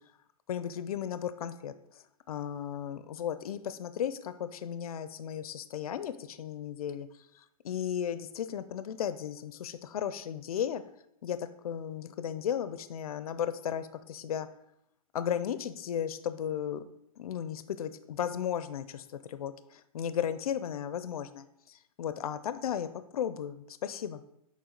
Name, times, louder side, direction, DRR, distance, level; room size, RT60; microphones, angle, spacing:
voice 1, 0.5-1.7 2.3-7.1 7.3-10.8 11.2-14.5 15.1-16.8 17.2-24.2, left 9 dB, 80° left, 12 dB, 0.5 m, -35 dB
7.1 x 4.7 x 3.8 m, 0.80 s
hypercardioid pair, 175°, 19 cm